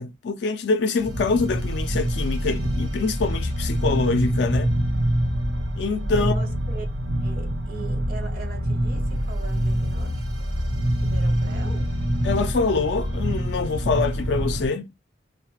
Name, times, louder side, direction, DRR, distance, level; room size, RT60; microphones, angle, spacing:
voice 1, 0.0-4.7 5.8-6.3 12.2-14.9, left 4 dB, 60° left, 0.4 m, -25 dB
sound 1, 1.0-14.7, equal, 75° right, 1.0 m, -25 dB
voice 2, 6.1-6.9 7.2-10.5 11.0-11.9, right 4 dB, 50° right, 0.6 m, -40 dB
3.1 x 2.1 x 3.0 m
head